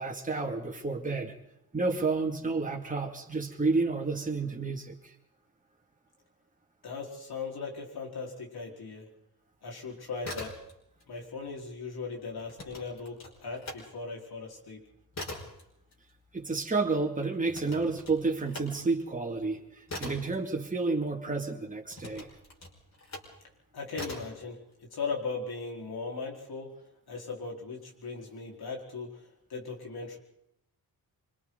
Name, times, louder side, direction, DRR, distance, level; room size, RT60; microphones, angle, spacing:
voice 1, 0.0-1.3 1.7-5.1 16.3-22.3, right 3 dB, 20° right, 1 dB, 2.5 m, -30 dB
voice 2, 6.8-9.1 9.6-10.5 11.1-14.8 23.7-26.7 27.1-30.2, left 4 dB, 80° left, -1 dB, 4.7 m, -38 dB
sound 1, 10.1-11.1 11.3-13.8 14.2-21.3 21.9-23.4 23.9-24.4, left 2 dB, 45° left, 5.4 m, -43 dB
26.5 x 25.0 x 4.0 m, 0.81 s
wide cardioid pair, 165°, 37 cm